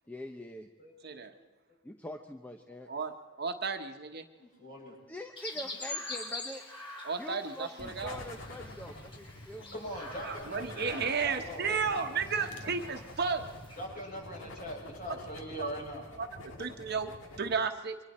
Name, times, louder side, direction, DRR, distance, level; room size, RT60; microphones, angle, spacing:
voice 1, 0.1-0.7 1.8-2.9 5.1-6.6 7.2-9.7, left 1 dB, 10° left, 4 dB, 0.8 m, -44 dB
voice 2, 0.8-1.3 2.7-3.1 4.4-5.0 9.7-12.1 13.8-16.1, equal, 50° left, -1 dB, 6.5 m, -42 dB
voice 3, 2.9-4.3 7.0-8.2 10.2-13.5 15.1-15.2 15.6-15.7 16.2-18.0, right 5 dB, 55° right, 6 dB, 1.2 m, -33 dB
Chirp tweet, 5.4-13.9, left 2 dB, 30° left, 6.7 m, -45 dB
sound 1, 7.8-17.6, left 1 dB, 70° left, 2.0 m, -47 dB
28.5 x 24.0 x 4.3 m, 1.2 s
head